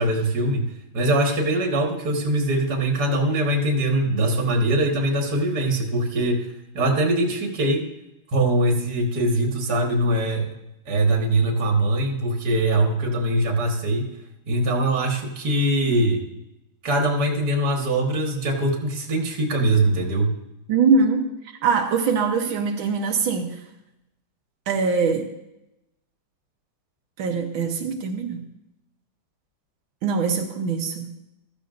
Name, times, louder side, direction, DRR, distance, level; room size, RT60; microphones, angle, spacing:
voice 1, 0.0-6.5 6.7-7.9 8.3-10.5 10.9-14.1 14.5-16.2 16.8-20.3, right 1 dB, 55° right, 2 dB, 2.2 m, -22 dB
voice 2, 20.7-21.3 21.6-23.6 24.7-25.3 27.2-28.5 30.0-31.2, right 5 dB, 90° right, 2 dB, 1.8 m, -22 dB
15.0 x 13.5 x 2.6 m, 0.91 s
omnidirectional pair, 2.1 m